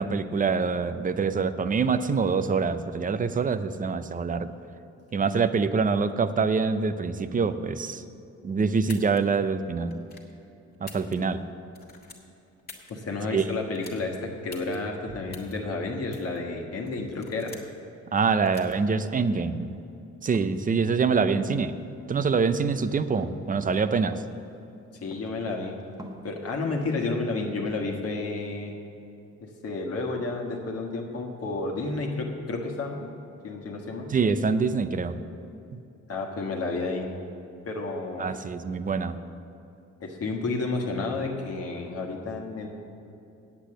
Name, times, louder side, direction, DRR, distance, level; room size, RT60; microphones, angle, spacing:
voice 1, 0.0-4.5 5.1-8.0 8.4-10.0 10.8-11.4 13.3-13.4 18.1-19.8 20.2-21.7 22.1-24.2 34.1-35.2 35.7-35.8 38.2-39.2, right 5 dB, 30° right, 12 dB, 0.5 m, -25 dB
sound 1, 8.8-9.2 9.9-10.3 10.7-11.5 11.7-12.9 13.7-14.0 14.5-14.8 15.3-15.5 16.1-16.4 16.9-17.8 18.5-18.7, left 4 dB, 30° left, 1.8 m, -45 dB
voice 2, 12.9-17.5 25.0-25.7 26.2-28.8 29.4-33.1 33.4-34.1 36.1-37.1 37.7-38.4 40.0-42.7, left 3 dB, 50° left, -1 dB, 1.4 m, -31 dB
sound 2, 20.3-20.7 21.3-21.5 22.2-22.4 23.2-23.4 24.1-24.4 25.1-25.5 25.8-26.3 26.9-27.1, right 1 dB, 10° right, 1.1 m, -41 dB
8.3 x 8.3 x 7.6 m, 2.8 s
cardioid pair, 90°, 30 cm